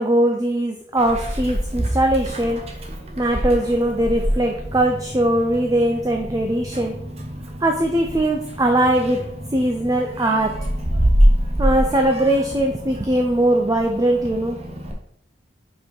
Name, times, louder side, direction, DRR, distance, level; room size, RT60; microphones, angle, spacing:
voice 1, 0.0-2.6 3.2-7.0 7.6-9.3 9.5-10.5 11.6-14.6, right 1 dB, 20° right, 2 dB, 0.5 m, -20 dB
Meow, 1.0-14.9, equal, 35° right, 1.0 m, -26 dB
sound 1, 4.7-10.3, equal, 70° right, 2.9 m, -39 dB
5.5 x 4.6 x 5.3 m, 0.69 s
head